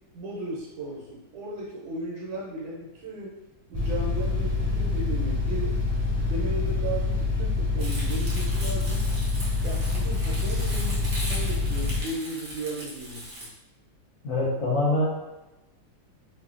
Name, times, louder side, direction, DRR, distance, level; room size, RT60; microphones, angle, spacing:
voice 1, 0.1-3.4 3.7-5.8 6.3-9.0 9.6-13.3, right 2 dB, 85° right, -5 dB, 1.4 m, -36 dB
sound 1, 3.7-12.0, left 3 dB, 30° right, 1.5 m, -26 dB
Crumpling crinkling, 7.8-13.5, right 1 dB, 55° right, 0.9 m, -39 dB
voice 2, 14.2-15.0, left 2 dB, 70° left, -6 dB, 0.7 m, -24 dB
3.2 x 2.1 x 2.4 m, 1.0 s
omnidirectional pair, 2.0 m